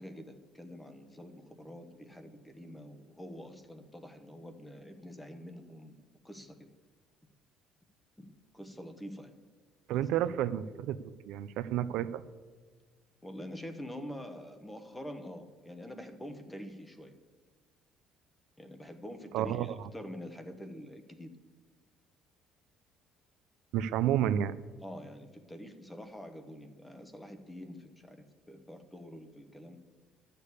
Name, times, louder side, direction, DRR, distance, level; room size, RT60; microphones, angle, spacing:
voice 1, 0.0-6.0 6.2-6.7 8.2-8.3 8.5-9.3 9.9-10.0 13.2-17.1 18.6-21.3 24.8-29.8, equal, 5° left, 9 dB, 0.9 m, -46 dB
voice 2, 9.9-11.0 11.3-12.2 19.3-19.8 23.7-24.5, right 11 dB, 70° right, 14 dB, 0.5 m, -30 dB
11.5 x 6.7 x 8.4 m, 1.4 s
cardioid pair, 170°, 0 cm